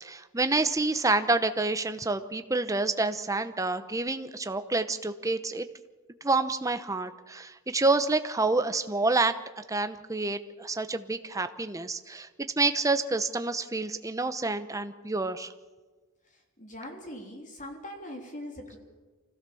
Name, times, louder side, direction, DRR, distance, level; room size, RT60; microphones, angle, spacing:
voice 1, 0.0-5.7 6.2-12.3 12.6-15.5, right 3 dB, 15° right, 9 dB, 0.9 m, -28 dB
voice 2, 16.6-18.8, left 1 dB, 35° left, 2 dB, 3.4 m, -41 dB
25.0 x 16.0 x 7.1 m, 1.3 s
head